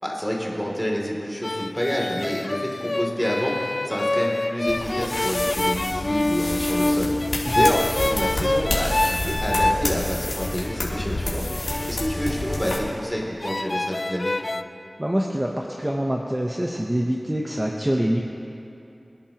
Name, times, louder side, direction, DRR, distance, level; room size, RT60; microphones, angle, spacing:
voice 1, 0.0-7.1 7.5-11.4 11.9-14.3, equal, ahead, -3 dB, 3.0 m, -28 dB
sound 1, 1.4-9.8 10.4-12.9 13.4-14.6, left 2 dB, 45° left, 0.4 m, -26 dB
sound 2, 4.7-12.8, left 2 dB, 60° left, 3.2 m, -29 dB
voice 2, 7.4-7.8 15.0-18.2, right 1 dB, 20° right, 0 dB, 1.0 m, -25 dB
25.5 x 11.0 x 3.0 m, 2.8 s
wide cardioid pair, 50°, 0 cm